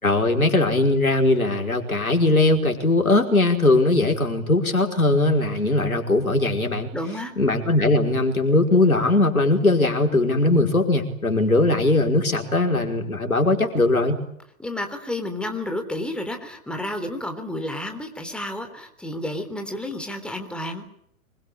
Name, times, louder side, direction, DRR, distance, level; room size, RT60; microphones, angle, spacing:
voice 1, 0.0-6.9 7.4-14.2, left 2 dB, 80° left, 4 dB, 5.3 m, -20 dB
voice 2, 6.9-7.3 14.6-20.8, left 1 dB, ahead, 5 dB, 3.6 m, -31 dB
25.5 x 23.0 x 8.8 m, 0.70 s
figure-of-eight pair, 110°, 42 cm